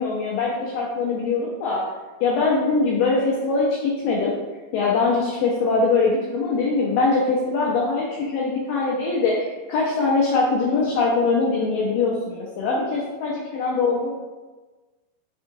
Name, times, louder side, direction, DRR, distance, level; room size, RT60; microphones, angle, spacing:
voice 1, 0.0-1.8 2.2-4.3 4.7-14.2, left 3 dB, 80° left, -4 dB, 2.0 m, -22 dB
5.8 x 2.7 x 2.6 m, 1.2 s
omnidirectional pair, 4.4 m